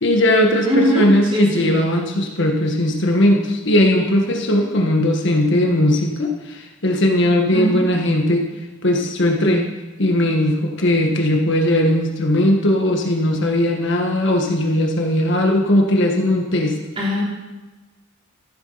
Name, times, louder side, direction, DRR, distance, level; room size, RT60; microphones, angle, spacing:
voice 1, 0.0-8.5 8.8-9.7 10.0-16.7, left 1 dB, 60° left, 2 dB, 1.5 m, -18 dB
voice 2, 0.6-1.8 7.5-7.9 17.0-17.2, equal, 25° right, -4 dB, 3.3 m, -21 dB
14.0 x 8.2 x 5.7 m, 1.2 s
head